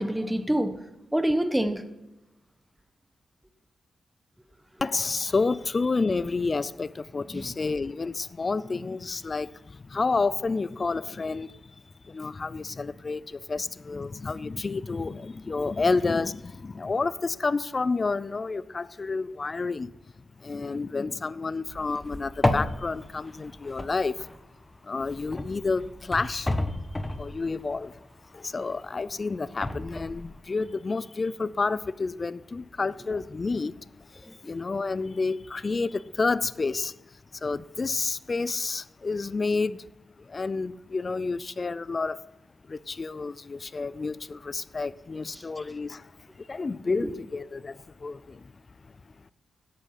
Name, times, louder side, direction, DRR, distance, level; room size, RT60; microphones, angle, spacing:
voice 1, 0.0-1.9 7.3-7.5 34.3-34.4 47.0-47.1, right 1 dB, 10° right, 1.2 m, -27 dB
voice 2, 4.8-24.3 24.8-26.5 26.9-28.1 28.3-42.3 42.7-48.5 48.8-48.9 49.2-49.3, left 3 dB, 45° left, 0.5 m, -30 dB
sound 1, 21.7-24.6 25.0-28.4 28.9-30.4, left 1 dB, 20° left, 1.2 m, -32 dB
10.5 x 8.2 x 5.7 m
cardioid pair, 55°, 0 cm